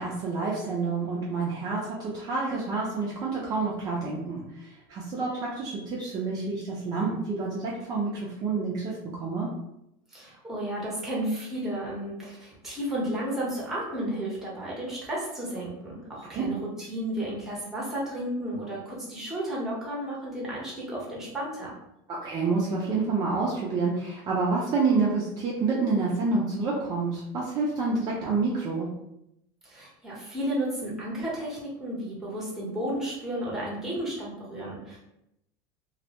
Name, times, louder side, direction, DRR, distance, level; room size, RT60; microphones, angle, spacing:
voice 1, 0.0-9.5 16.3-16.5 22.1-28.9, right 4 dB, 35° right, -5 dB, 0.5 m, -28 dB
voice 2, 10.1-21.7 29.6-35.0, right 1 dB, 5° right, -6 dB, 0.9 m, -33 dB
2.3 x 2.1 x 2.8 m, 0.81 s
cardioid pair, 150°, 12 cm